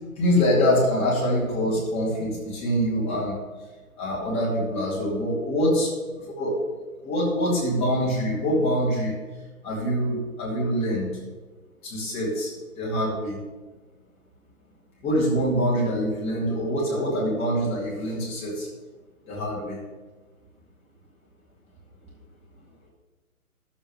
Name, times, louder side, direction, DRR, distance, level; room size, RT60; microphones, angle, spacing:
voice 1, 0.2-3.4 4.0-5.9 6.4-6.6 7.0-9.1 9.6-11.1 11.8-12.5 12.8-13.4 15.0-18.7 19.3-19.8, equal, 15° left, -6 dB, 2.3 m, -24 dB
12.5 x 7.3 x 3.3 m, 1.3 s
figure-of-eight pair, 140°, 43 cm